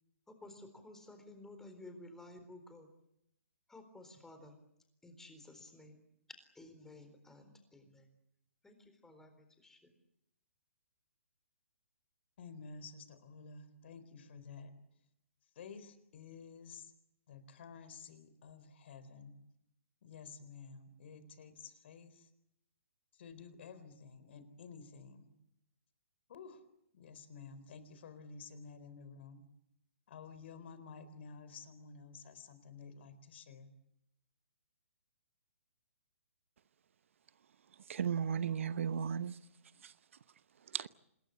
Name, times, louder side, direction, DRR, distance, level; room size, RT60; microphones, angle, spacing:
voice 1, 0.3-2.9 3.7-4.6 5.0-6.0 6.5-8.1 8.6-9.3 9.6-9.9, left 2 dB, 5° left, 7 dB, 4.1 m, -54 dB
voice 2, 12.4-14.7 15.6-16.9 17.3-19.3 20.0-22.3 23.1-25.3 26.3-26.6 26.9-29.4 30.1-33.7, left 5 dB, 55° left, 13 dB, 4.1 m, -52 dB
voice 3, 37.9-39.4 39.8-39.9 40.7-40.9, right 7 dB, 65° right, 15 dB, 1.0 m, -35 dB
26.5 x 20.5 x 8.6 m, 0.81 s
hypercardioid pair, 145°, 8 cm